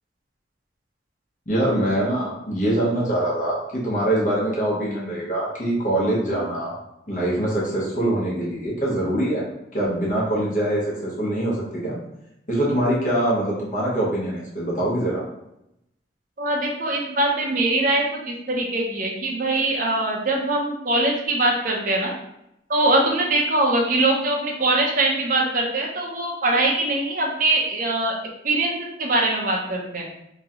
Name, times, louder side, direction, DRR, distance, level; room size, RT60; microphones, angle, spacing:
voice 1, 1.5-6.8 7.1-9.5 9.7-12.0 12.5-15.2, right 1 dB, 45° left, -5 dB, 1.0 m, -23 dB
voice 2, 16.4-22.1 22.7-28.2 28.4-30.1, right 2 dB, 45° right, -1 dB, 0.7 m, -22 dB
3.0 x 2.9 x 3.6 m, 0.83 s
head